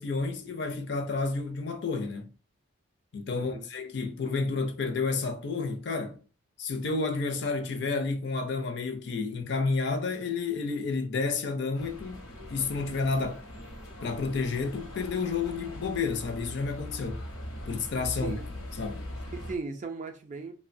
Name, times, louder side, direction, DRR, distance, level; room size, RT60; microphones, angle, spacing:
voice 1, 0.0-2.3 3.1-6.2 6.6-13.4 14.0-17.2 17.7-18.4 18.7-19.1, left 4 dB, 55° left, 0.4 m, -30 dB
voice 2, 3.3-3.7 18.2-18.4 19.3-20.5, right 4 dB, 35° right, 0.3 m, -37 dB
sound 1, 11.7-19.6, left 1 dB, 80° left, 0.8 m, -41 dB
2.7 x 2.1 x 2.5 m
head